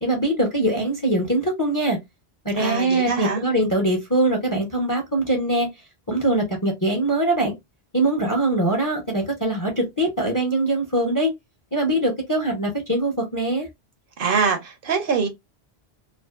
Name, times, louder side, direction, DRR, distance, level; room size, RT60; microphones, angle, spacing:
voice 1, 0.0-2.0 2.4-5.7 6.1-7.5 7.9-11.3 11.7-13.7, right 1 dB, 25° left, 0.4 m, -22 dB
voice 2, 2.6-3.4 14.2-15.3, right 5 dB, 65° right, 0.7 m, -23 dB
2.5 x 2.3 x 2.2 m
omnidirectional pair, 1.1 m